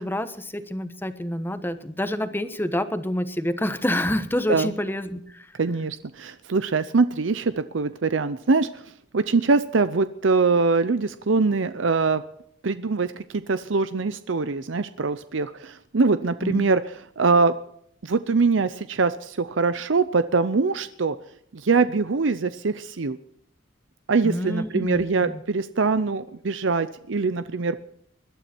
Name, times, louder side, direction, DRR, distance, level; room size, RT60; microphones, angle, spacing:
voice 1, 0.0-5.5 16.4-16.7 24.2-25.4, left 1 dB, 10° left, 11 dB, 1.1 m, -28 dB
voice 2, 5.6-12.2 12.6-17.6 18.0-21.2 21.5-23.2 24.1-27.8, right 4 dB, 70° right, 12 dB, 0.7 m, -23 dB
21.0 x 12.0 x 4.4 m, 0.70 s
head